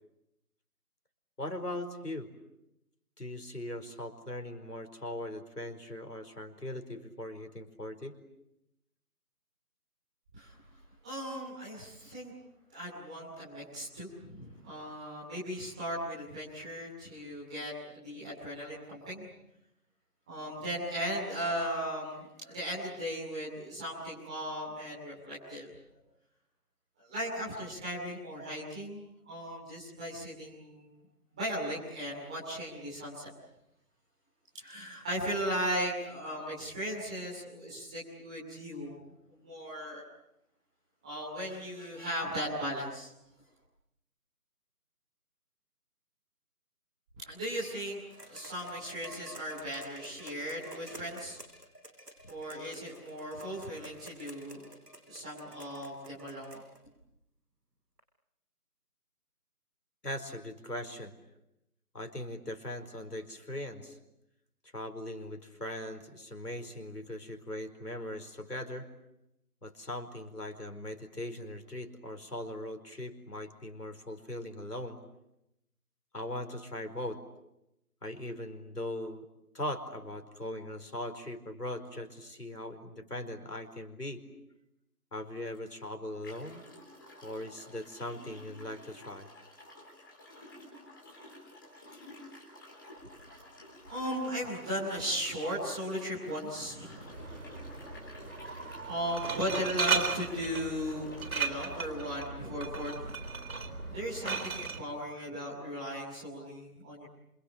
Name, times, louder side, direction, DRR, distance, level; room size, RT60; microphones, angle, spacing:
voice 1, 1.4-2.3 3.2-8.2 60.0-61.1 61.9-64.0 64.7-68.9 69.6-75.0 76.1-77.2 78.0-79.3 79.5-84.2 85.1-86.6 87.2-89.3, left 1 dB, 80° left, 6 dB, 4.8 m, -40 dB
voice 2, 11.0-12.3 12.7-19.3 20.3-25.7 27.0-31.0 31.3-33.3 34.5-39.0 39.3-40.0 41.0-43.1 47.1-51.4 52.3-54.7 55.0-56.6 93.2-93.4 93.8-97.7 98.9-103.3 103.9-107.0, equal, 5° right, -10 dB, 2.7 m, -37 dB
sound 1, 48.1-56.8 58.0-58.1, right 1 dB, 85° right, 6.2 m, -50 dB
sound 2, 85.5-85.6 86.2-102.1, left 1 dB, 15° left, 4.1 m, -52 dB
Glass, 97.0-104.8, right 5 dB, 65° right, 3.8 m, -36 dB
29.5 x 27.5 x 7.4 m, 0.84 s
figure-of-eight pair, 170°, 47 cm